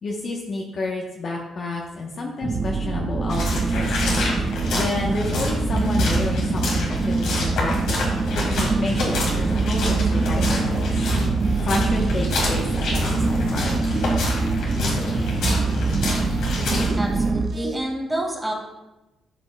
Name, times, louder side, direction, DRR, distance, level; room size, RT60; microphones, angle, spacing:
voice 1, 0.0-4.1 4.5-8.2 8.6-10.9 11.6-13.7, left 2 dB, 50° left, -1 dB, 0.9 m, -30 dB
sound 1, 2.4-17.5, right 4 dB, 35° right, 0.4 m, -24 dB
sound 2, 3.3-16.9, left 1 dB, 85° left, 2.0 m, -27 dB
sound 3, 10.4-17.8, right 2 dB, 60° right, 1.0 m, -34 dB
voice 2, 17.0-18.5, right 1 dB, 10° right, -3 dB, 1.9 m, -28 dB
12.0 x 5.1 x 2.2 m, 1.0 s
cardioid pair, 90°, 0 cm